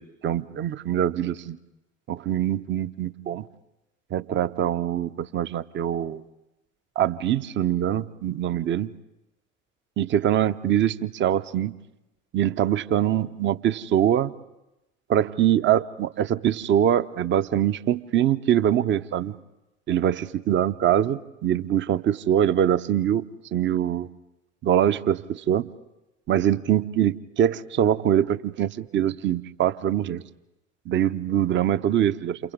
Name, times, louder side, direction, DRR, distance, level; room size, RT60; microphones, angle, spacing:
voice 1, 0.0-1.6 2.1-3.4 4.1-6.2 7.0-8.9 10.0-11.7 12.3-14.3 15.1-19.3 19.9-24.1 24.6-25.7 26.3-30.2 30.9-32.4, right 10 dB, 30° right, 15 dB, 0.7 m, -23 dB
28.5 x 28.0 x 3.7 m, 0.97 s
figure-of-eight pair, 65°, 38 cm